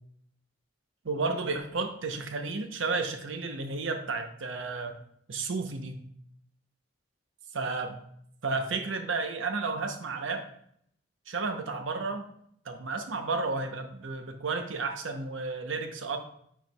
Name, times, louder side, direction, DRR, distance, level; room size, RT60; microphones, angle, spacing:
voice 1, 1.0-5.0 5.3-6.0 7.5-8.0 8.4-10.5 11.3-12.3 12.6-16.2, right 3 dB, 75° right, 7 dB, 0.7 m, -32 dB
9.2 x 4.5 x 2.2 m, 0.69 s
head